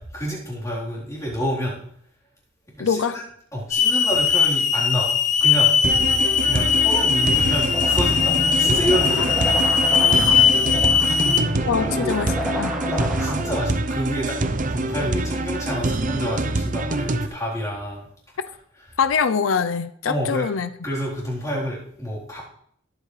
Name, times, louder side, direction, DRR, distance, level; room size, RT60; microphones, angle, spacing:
voice 1, 0.1-1.8 2.7-3.2 3.5-5.2 5.4-5.8 6.5-9.3 11.0-12.2 12.9-14.4 14.7-18.1 20.1-20.4 20.8-22.4, equal, 15° left, -6 dB, 3.9 m, -28 dB
voice 2, 2.8-3.2 9.2-9.3 11.6-12.8 19.0-20.7, left 6 dB, 90° left, 11 dB, 0.5 m, -23 dB
Hiss / Alarm, 3.7-11.4, left 6 dB, 40° left, 1.0 m, -19 dB
sound 1, 5.8-17.3, right 2 dB, 40° right, 0.6 m, -26 dB
sound 2, 7.7-13.7, equal, 5° right, 1.5 m, -30 dB
19.0 x 8.2 x 3.3 m, 0.68 s
head